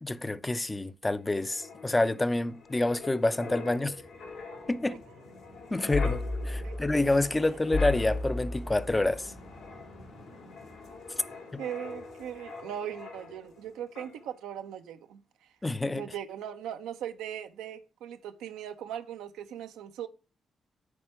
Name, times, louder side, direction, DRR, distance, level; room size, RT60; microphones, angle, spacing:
voice 1, 0.0-4.0 4.7-5.0 5.7-9.3 11.5-11.6 15.6-16.0, left 2 dB, 20° left, 0.7 m, -28 dB
Wind, 1.3-13.7 14.0-14.2, left 3 dB, 80° left, 3.1 m, -37 dB
voice 2, 11.6-15.2 15.9-20.1, right 10 dB, 80° right, 0.7 m, -39 dB
9.8 x 4.3 x 4.7 m
hypercardioid pair, 45°, 0 cm